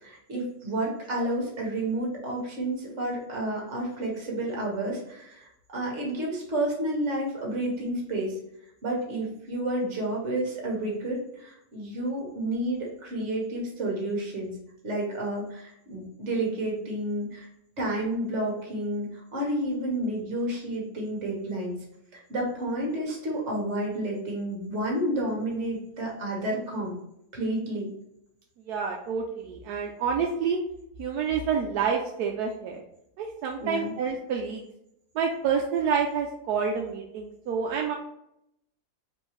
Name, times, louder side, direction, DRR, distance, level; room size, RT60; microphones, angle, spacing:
voice 1, 0.0-8.3 8.8-14.6 14.8-17.5 17.8-21.8 22.1-26.9 27.3-27.9 33.6-33.9, right 1 dB, 50° right, -2 dB, 1.6 m, -30 dB
voice 2, 28.7-30.6 31.0-32.8 33.2-34.6 35.1-38.0, right 6 dB, 80° right, 0 dB, 1.1 m, -28 dB
4.4 x 3.3 x 3.1 m, 0.76 s
omnidirectional pair, 1.7 m